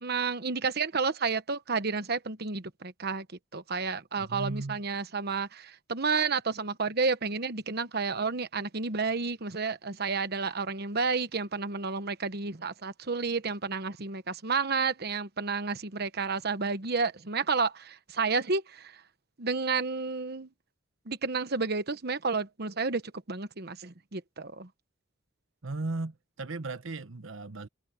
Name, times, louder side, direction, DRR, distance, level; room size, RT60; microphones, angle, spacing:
voice 1, 0.0-3.3 3.5-19.0 19.4-20.5 21.1-23.0 23.3-24.7, right 4 dB, 55° right, 1.1 m, -31 dB
voice 2, 4.2-4.8 25.6-27.7, right 3 dB, 90° right, 1.2 m, -36 dB
head